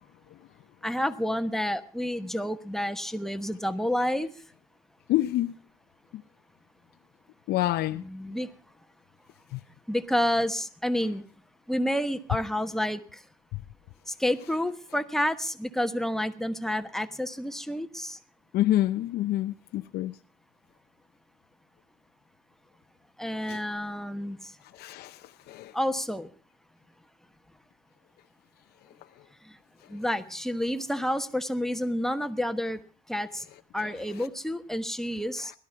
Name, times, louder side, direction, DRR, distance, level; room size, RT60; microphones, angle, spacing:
voice 1, 0.8-4.3 7.9-8.5 9.9-11.2 11.7-13.2 14.1-18.2 23.2-24.6 25.7-26.3 29.4-29.6 29.9-32.8 33.1-33.5 33.7-35.5, equal, ahead, 1.1 m, -29 dB
voice 2, 5.1-5.6 7.5-8.0 9.5-9.6 18.5-20.1 23.5-23.6 24.7-25.7, left 14 dB, 75° left, 0.6 m, -27 dB
17.5 x 12.5 x 4.6 m
cardioid pair, 110°, 17 cm